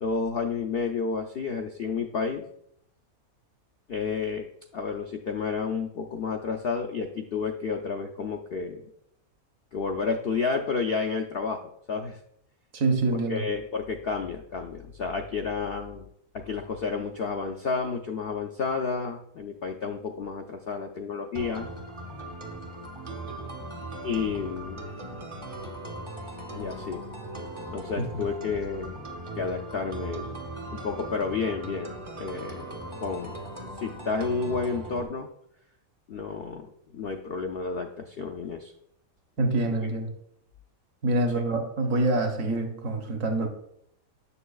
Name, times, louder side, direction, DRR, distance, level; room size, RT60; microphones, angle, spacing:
voice 1, 0.0-2.4 3.9-4.5 4.7-8.8 9.7-11.6 11.9-12.2 13.3-16.1 16.3-21.7 24.0-24.9 26.5-27.0 27.7-29.0 29.4-30.4 30.7-33.4 33.8-35.3 36.1-38.7 39.6-39.7, left 5 dB, 70° left, 4 dB, 0.5 m, -31 dB
voice 2, 12.7-13.5 28.0-28.1 39.4-40.1 41.0-43.5, right 2 dB, 65° right, 4 dB, 1.2 m, -26 dB
sound 1, 21.3-35.1, right 1 dB, 30° right, 0.6 m, -39 dB
7.1 x 6.9 x 2.3 m, 0.72 s
omnidirectional pair, 1.5 m